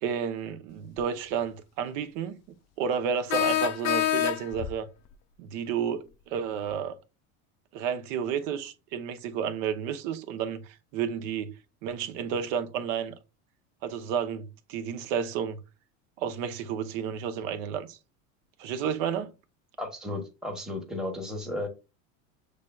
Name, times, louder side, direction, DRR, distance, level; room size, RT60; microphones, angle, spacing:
voice 1, 0.0-2.4 2.8-4.9 5.4-6.9 7.7-13.1 13.8-15.6 16.2-18.0 18.6-19.3, right 7 dB, 70° right, 0.8 m, -31 dB
sound 1, 1.0-1.1 3.3-4.7, left 11 dB, 45° left, 0.5 m, -26 dB
voice 2, 19.8-21.7, left 2 dB, ahead, 1.0 m, -34 dB
6.4 x 3.3 x 2.3 m
supercardioid pair, 115°, 39 cm